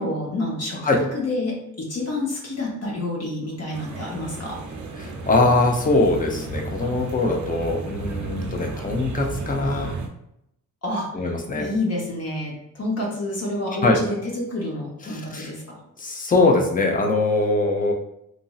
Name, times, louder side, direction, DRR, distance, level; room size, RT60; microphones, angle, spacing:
voice 1, 0.0-0.8 1.1-4.6 10.8-11.1 11.6-15.6, left 2 dB, 50° left, -3 dB, 1.0 m, -28 dB
sound 1, 3.7-10.1, right 2 dB, 60° right, 0.5 m, -33 dB
voice 2, 5.0-10.0 11.1-11.7 13.7-14.0 15.1-15.5 16.0-17.9, left 2 dB, 25° left, 1 dB, 0.5 m, -22 dB
3.0 x 2.5 x 2.3 m, 0.81 s
cardioid pair, 80°, 33 cm